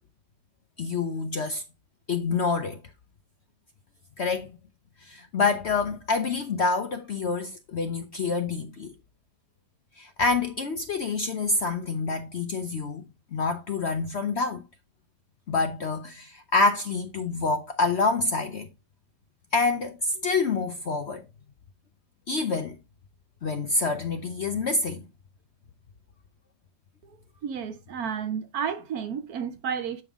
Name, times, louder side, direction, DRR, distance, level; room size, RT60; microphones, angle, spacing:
voice 1, 0.8-1.6 2.1-2.8 4.2-4.5 5.0-8.9 10.0-13.0 13.3-14.6 15.5-18.7 19.5-21.2 22.3-22.8 23.4-25.0, left 3 dB, 55° left, 0.8 m, -27 dB
voice 2, 27.4-30.0, right 7 dB, 65° right, 1.2 m, -31 dB
8.0 x 5.4 x 3.6 m
omnidirectional pair, 1.8 m